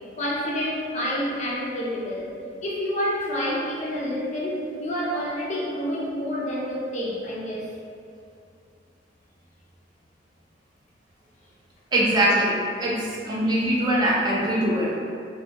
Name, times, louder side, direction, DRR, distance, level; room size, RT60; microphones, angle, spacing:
voice 1, 0.2-2.3 2.6-7.7, equal, 40° left, -4 dB, 0.4 m, -28 dB
voice 2, 11.9-12.5 12.8-14.9, right 1 dB, 25° right, -6 dB, 0.3 m, -22 dB
2.2 x 2.1 x 2.7 m, 2.4 s
head